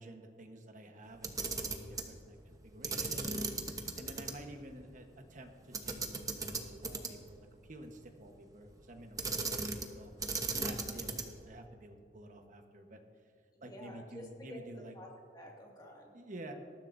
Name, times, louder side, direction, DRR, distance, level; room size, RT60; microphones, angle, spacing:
voice 1, 0.0-10.1 10.5-13.0 13.6-14.9 16.1-16.5, right 1 dB, 45° right, 4 dB, 1.2 m, -51 dB
Camera, 1.1-2.1 2.8-4.3 4.7-4.8 5.7-7.3 9.2-9.9 10.2-11.4, right 3 dB, 20° right, 1.0 m, -37 dB
voice 2, 13.5-14.6 14.9-16.2, left 1 dB, 25° left, -1 dB, 2.1 m, -50 dB
19.5 x 13.5 x 2.7 m, 2.3 s
head